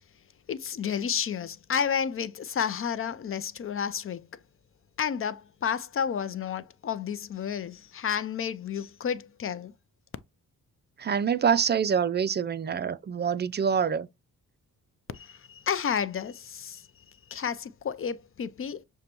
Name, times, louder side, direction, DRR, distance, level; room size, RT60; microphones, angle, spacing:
voice 1, 0.5-4.3 5.0-9.7 15.1-16.8 17.3-18.8, left 7 dB, 40° left, 0.5 m, -31 dB
voice 2, 11.0-14.1, right 7 dB, 30° right, 0.4 m, -26 dB
6.5 x 2.3 x 2.9 m
cardioid pair, 60°, 35 cm